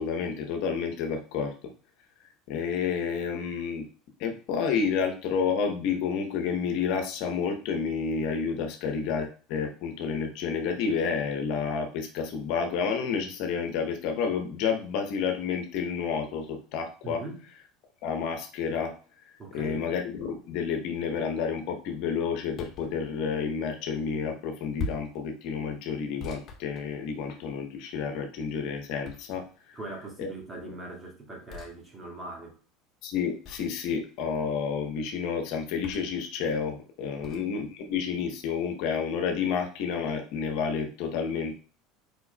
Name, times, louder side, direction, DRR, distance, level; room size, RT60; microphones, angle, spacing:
voice 1, 0.0-1.5 2.5-3.9 4.2-17.2 18.0-18.9 19.5-29.8 30.2-30.3 33.0-41.5, left 6 dB, 65° left, 0.8 m, -30 dB
voice 2, 17.0-17.4 19.4-19.9 29.7-32.6 37.2-37.5, right 2 dB, 20° right, 1.9 m, -41 dB
sound 1, 22.6-22.9 24.8-25.2 26.2-27.4 29.0-29.6 31.5-31.7 33.4-33.8 35.8-36.2 37.2-37.5, left 3 dB, 40° left, 1.1 m, -40 dB
4.6 x 4.6 x 2.2 m
hypercardioid pair, 95°, 0 cm